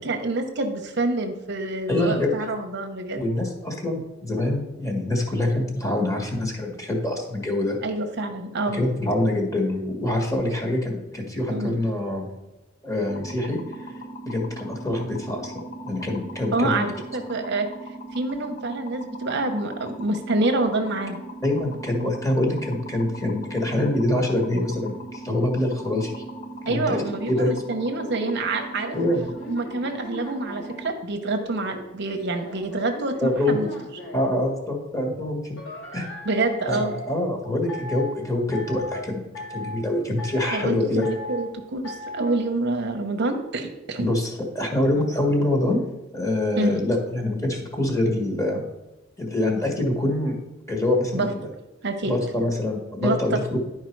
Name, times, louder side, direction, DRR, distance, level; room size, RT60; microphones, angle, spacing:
voice 1, 0.0-3.2 7.8-8.8 11.5-11.7 16.5-17.7 18.1-21.2 26.7-29.0 29.5-33.7 36.2-37.0 40.5-44.1 46.6-46.8 51.1-51.3 51.8-52.2 53.0-53.4, right 2 dB, 60° right, 5 dB, 0.9 m, -27 dB
voice 2, 1.9-2.3 3.1-7.8 8.7-12.3 12.8-13.6 14.2-16.8 21.4-26.2 26.7-27.5 28.9-29.3 33.2-33.6 34.1-35.6 35.9-36.1 36.7-39.2 39.5-41.1 44.0-45.8 46.1-48.6 49.2-50.4 50.7-51.5 52.0-53.6, left 1 dB, 15° left, 1 dB, 1.6 m, -25 dB
sound 1, 13.1-30.9, right 1 dB, 40° left, 0.9 m, -39 dB
sound 2, 27.9-30.8 31.4-34.3 35.6-37.2 37.7-38.2 38.5-39.0 39.3-39.8 40.2-40.7 41.0-41.5 41.8-42.4, left 2 dB, 75° left, 2.7 m, -37 dB
10.5 x 4.7 x 4.6 m, 1.0 s
head